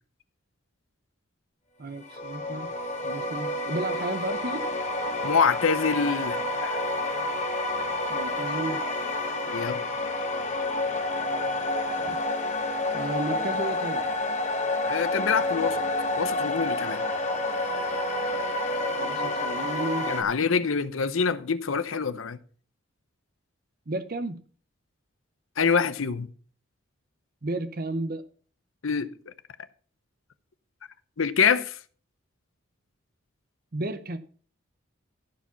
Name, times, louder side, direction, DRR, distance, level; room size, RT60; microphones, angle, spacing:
voice 1, 1.8-2.7 3.0-4.7 8.1-8.8 12.1-12.2 12.9-14.0 18.9-20.1 23.9-24.4 27.4-28.2 33.7-34.2, right 2 dB, 45° right, 0.8 m, -33 dB
sound 1, 2.0-20.2, left 2 dB, 35° left, 1.4 m, -29 dB
voice 2, 5.2-6.8 9.5-9.8 14.8-15.8 16.2-17.0 20.1-22.4 25.6-26.3 28.8-29.1 31.2-31.8, left 5 dB, 80° left, 0.8 m, -25 dB
14.5 x 5.0 x 5.7 m
head